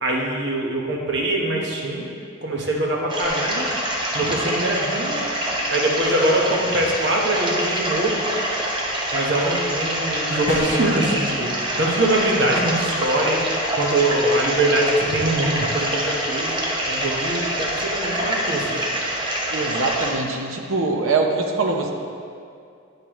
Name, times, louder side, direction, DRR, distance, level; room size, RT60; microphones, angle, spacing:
voice 1, 0.0-2.1 2.4-3.7 4.1-5.2 5.7-8.2 9.1-16.6 16.9-18.8, right 1 dB, 55° right, -2 dB, 1.1 m, -23 dB
sound 1, 3.1-20.1, right 1 dB, 25° right, 0.8 m, -26 dB
sound 2, 10.5-11.0, equal, 45° left, 1.0 m, -25 dB
voice 2, 19.5-21.9, right 3 dB, 75° right, 2 dB, 0.7 m, -23 dB
9.4 x 6.7 x 3.1 m, 2.4 s
head